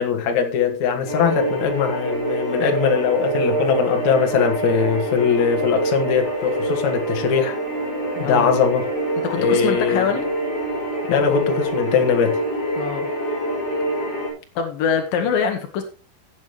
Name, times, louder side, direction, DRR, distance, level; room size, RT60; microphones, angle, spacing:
voice 1, 0.0-7.6 8.2-8.9 9.4-10.1 11.1-12.4, left 6 dB, 55° left, 2.1 m, -20 dB
sound 1, 1.0-14.3, right 1 dB, 30° left, 5.9 m, -25 dB
voice 2, 8.2-8.5 9.2-10.3 12.8-13.1 14.6-15.8, left 7 dB, 85° left, 1.9 m, -24 dB
16.0 x 8.3 x 3.2 m
omnidirectional pair, 5.9 m